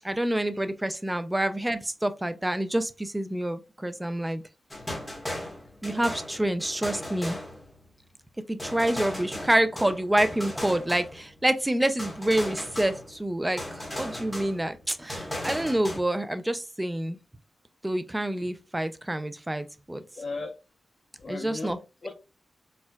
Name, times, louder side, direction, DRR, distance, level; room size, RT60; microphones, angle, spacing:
voice 1, 0.0-4.4 5.8-7.4 8.5-17.2 17.8-20.0 21.3-21.8, right 1 dB, 10° right, 0.3 m, -27 dB
sound 1, 4.7-8.0 8.6-11.4 12.0-13.3 13.6-16.0, left 1 dB, 10° left, 1.1 m, -37 dB
voice 2, 20.1-20.5 21.2-22.1, left 3 dB, 50° left, 0.7 m, -37 dB
4.3 x 2.2 x 2.2 m
wide cardioid pair, 115°, 0 cm